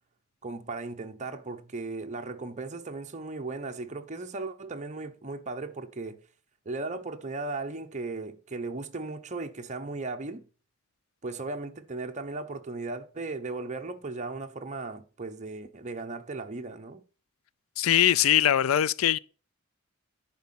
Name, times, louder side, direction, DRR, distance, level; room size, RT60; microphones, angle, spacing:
voice 1, 0.4-6.2 6.6-10.4 11.2-17.0, right 3 dB, 35° right, 1.0 m, -36 dB
voice 2, 17.8-19.2, left 11 dB, 75° left, 0.4 m, -22 dB
10.5 x 4.2 x 5.8 m
head